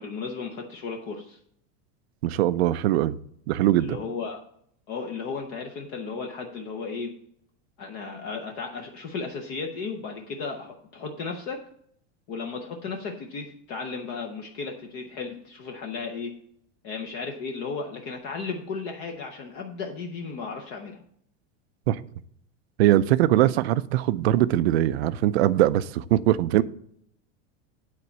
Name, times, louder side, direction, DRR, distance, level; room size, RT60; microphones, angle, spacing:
voice 1, 0.0-1.4 3.8-4.4 4.9-7.1 7.8-11.6 12.3-16.3 16.8-21.0, left 4 dB, 25° left, 3 dB, 0.6 m, -35 dB
voice 2, 2.2-3.2 3.5-4.0 21.9-22.0 22.8-26.6, right 14 dB, 55° right, 16 dB, 0.5 m, -21 dB
9.6 x 4.3 x 7.0 m, 0.67 s
supercardioid pair, 180°, 38 cm